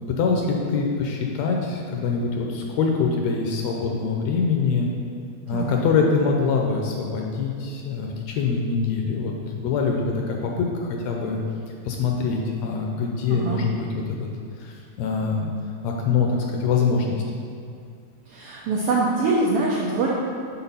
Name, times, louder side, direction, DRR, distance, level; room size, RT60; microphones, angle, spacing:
voice 1, 0.1-4.9 5.5-11.4 11.8-14.3 14.6-15.5 15.8-17.2, left 5 dB, 75° left, 1 dB, 1.6 m, -24 dB
voice 2, 13.3-13.6 18.3-20.1, right 3 dB, 85° right, -3 dB, 1.3 m, -23 dB
5.9 x 4.1 x 5.5 m, 2.4 s
omnidirectional pair, 3.4 m